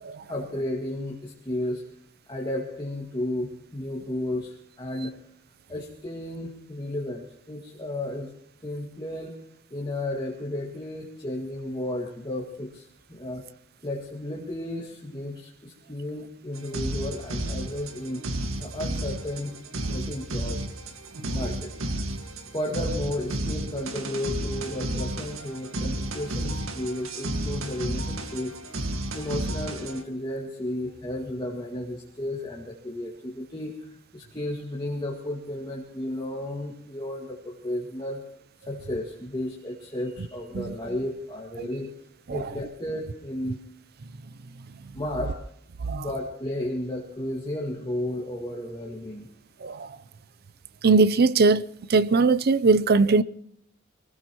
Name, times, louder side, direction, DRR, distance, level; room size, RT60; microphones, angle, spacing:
voice 1, 0.3-1.8 2.3-5.1 5.7-8.3 8.6-9.3 9.7-13.5 13.8-18.2 18.6-19.6 19.9-20.6 21.2-21.7 22.5-28.8 29.1-38.2 38.7-41.9 42.3-43.6 44.9-45.4 45.9-49.3, left 1 dB, 20° left, 1.9 m, -33 dB
sound 1, 16.6-30.0, right 1 dB, 75° right, 1.8 m, -32 dB
voice 2, 49.6-49.9 50.8-51.6 51.9-53.2, right 4 dB, 50° right, 0.5 m, -20 dB
24.5 x 19.5 x 3.0 m
head